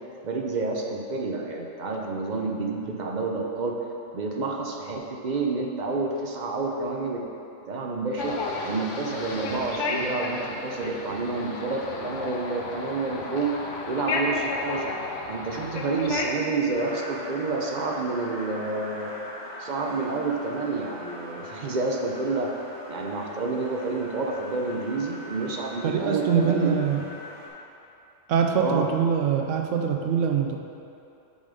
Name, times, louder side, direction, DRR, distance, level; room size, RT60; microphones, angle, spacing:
voice 1, 0.2-3.7 4.1-7.2 7.6-8.3 8.6-13.5 13.9-14.9 15.3-19.1 19.6-22.5 22.9-26.7 28.6-28.9, right 3 dB, 50° right, 0 dB, 0.5 m, -29 dB
sound 1, 8.2-16.3, left 3 dB, 70° left, 1.0 m, -32 dB
sound 2, 16.7-27.5, left 1 dB, 40° left, 1.6 m, -41 dB
voice 2, 25.8-27.0 28.3-30.6, right 7 dB, 75° right, 3 dB, 1.0 m, -24 dB
7.2 x 3.9 x 5.0 m, 2.8 s
omnidirectional pair, 1.3 m